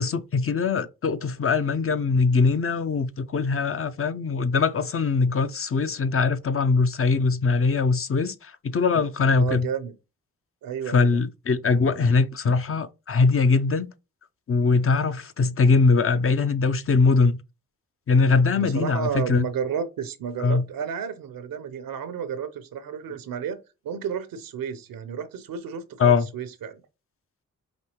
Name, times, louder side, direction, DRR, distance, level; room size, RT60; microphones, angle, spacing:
voice 1, 0.0-9.7 10.9-13.9 14.5-17.4 18.1-19.5 20.4-20.6 26.0-26.3, left 4 dB, 40° left, 0.5 m, -22 dB
voice 2, 9.4-10.0 10.6-11.2 18.6-23.6 23.8-26.8, right 7 dB, 80° right, 0.7 m, -32 dB
5.2 x 2.8 x 2.9 m
supercardioid pair, 40°, 34 cm